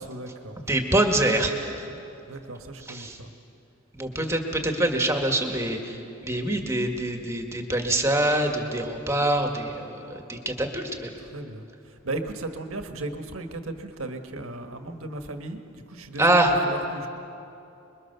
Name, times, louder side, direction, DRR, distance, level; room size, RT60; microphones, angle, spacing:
voice 1, 0.0-0.7 2.3-3.3 11.3-11.7 12.0-17.1, right 2 dB, 80° right, 6 dB, 1.6 m, -36 dB
voice 2, 0.7-1.9 2.8-3.2 3.9-11.1 16.2-16.6, right 1 dB, 15° right, 3 dB, 1.9 m, -25 dB
27.5 x 22.0 x 6.9 m, 2.8 s
head